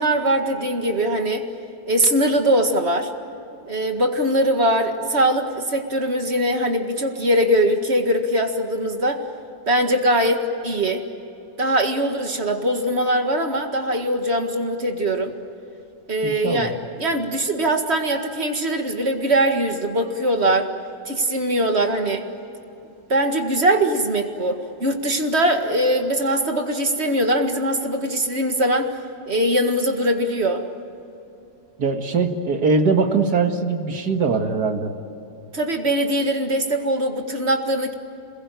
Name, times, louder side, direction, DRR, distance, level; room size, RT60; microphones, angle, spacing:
voice 1, 0.0-1.5 1.9-3.1 3.7-9.2 9.7-11.0 11.6-15.3 16.1-20.7 21.1-22.2 23.1-28.9 29.3-30.6 35.5-37.9, right 1 dB, 40° right, 5 dB, 2.1 m, -21 dB
voice 2, 16.2-16.7 31.8-34.9, right 4 dB, 70° right, 5 dB, 2.3 m, -21 dB
27.5 x 21.0 x 9.2 m, 2.8 s
omnidirectional pair, 1.8 m